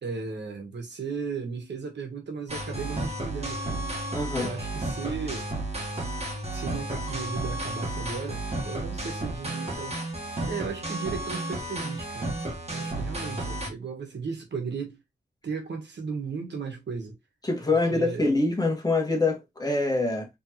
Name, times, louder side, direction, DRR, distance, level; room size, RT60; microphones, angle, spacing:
voice 1, 0.0-3.9 4.4-5.5 6.5-10.0 10.5-12.3 12.7-15.0 15.4-17.2 17.7-18.2, right 5 dB, 80° right, 1.3 m, -35 dB
sound 1, 2.5-13.7, right 1 dB, 35° right, 1.5 m, -32 dB
voice 2, 4.1-4.5 17.4-20.3, left 2 dB, 20° left, 1.5 m, -25 dB
4.2 x 3.3 x 3.0 m
wide cardioid pair, 100°, 18 cm